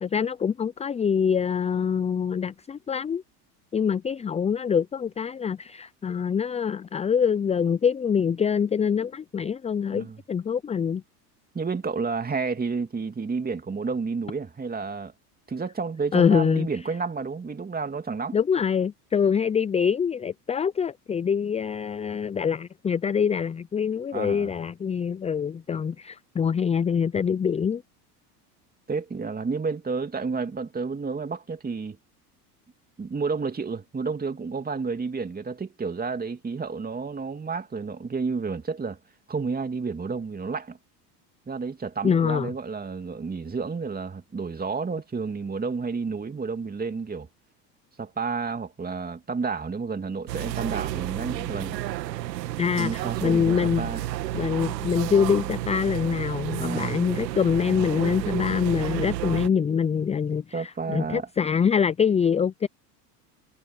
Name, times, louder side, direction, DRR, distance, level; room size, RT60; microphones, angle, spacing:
voice 1, 0.0-3.2 3.7-11.0 16.1-16.7 18.3-27.8 42.0-42.5 52.6-53.9 54.3-62.7, left 7 dB, 15° left, 0.5 m, -25 dB
voice 2, 9.9-10.2 11.5-15.1 15.5-18.4 24.1-24.5 28.9-32.0 33.0-39.0 39.3-40.8 41.5-47.3 48.0-51.8 52.8-54.0 56.6-57.0 60.5-61.3, right 4 dB, 20° right, 2.8 m, -31 dB
sound 1, 50.3-59.5, right 15 dB, 85° right, 2.2 m, -31 dB
hypercardioid pair, 95°, 48 cm